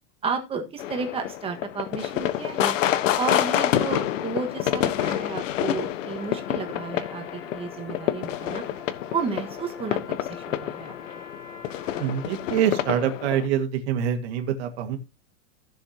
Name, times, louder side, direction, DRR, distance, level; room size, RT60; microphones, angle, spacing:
voice 1, 0.2-2.7 3.2-8.6 9.1-11.0, right 5 dB, 15° right, 5 dB, 1.5 m, -32 dB
sound 1, 0.8-13.5, left 12 dB, 85° left, 1.2 m, -28 dB
Trumpet, 6.2-13.1, left 4 dB, 10° left, 1.8 m, -46 dB
voice 2, 12.0-15.0, right 9 dB, 60° right, 5 dB, 2.0 m, -25 dB
15.0 x 7.1 x 2.9 m, 0.26 s
supercardioid pair, 165°, 37 cm